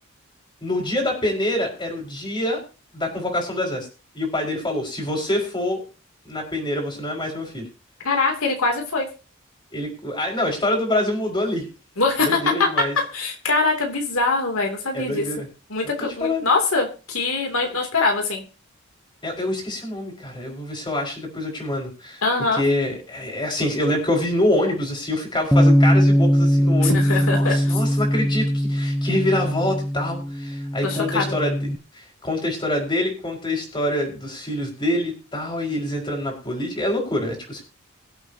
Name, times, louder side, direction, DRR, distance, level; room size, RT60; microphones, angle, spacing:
voice 1, 0.6-2.6 2.9-3.9 4.1-5.8 6.2-7.7 9.7-11.7 12.2-12.9 14.9-15.5 15.8-15.9 16.2-16.5 19.2-22.2 22.5-37.6, left 1 dB, 20° left, 1 dB, 4.8 m, -25 dB
voice 2, 8.0-9.1 12.0-12.4 13.1-15.2 15.7-18.4 22.2-22.6 26.8-27.7 30.8-31.3, left 3 dB, 80° left, 2 dB, 2.8 m, -23 dB
Bass guitar, 25.5-31.8, equal, ahead, 0.5 m, -20 dB
23.0 x 8.1 x 2.8 m, 0.34 s
head